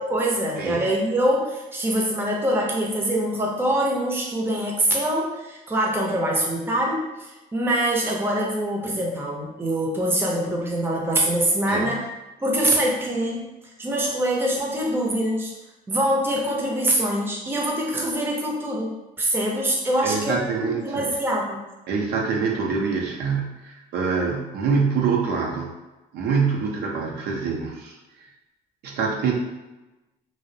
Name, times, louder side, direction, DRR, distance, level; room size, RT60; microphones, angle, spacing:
voice 1, 0.1-12.0 12.4-13.4 13.8-15.5 15.9-20.4 20.8-21.6, right 1 dB, 15° right, -2 dB, 0.5 m, -24 dB
voice 2, 20.0-21.0 21.9-25.7 26.1-28.0 28.8-29.3, right 5 dB, 75° right, -1 dB, 0.5 m, -25 dB
2.3 x 2.0 x 2.6 m, 1.1 s
cardioid pair, 110°, 17 cm